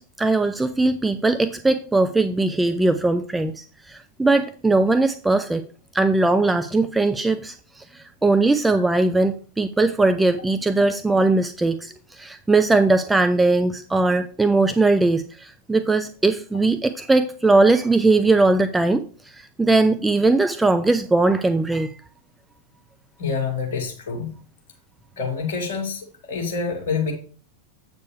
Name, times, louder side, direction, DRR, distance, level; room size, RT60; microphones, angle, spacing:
voice 1, 0.0-5.6 5.9-19.0 19.3-21.9, right 2 dB, 10° right, 9 dB, 0.4 m, -20 dB
voice 2, 23.2-24.3 25.2-27.1, left 5 dB, 55° left, 1 dB, 2.4 m, -27 dB
8.1 x 6.4 x 3.3 m, 0.41 s
figure-of-eight pair, 90°, 0 cm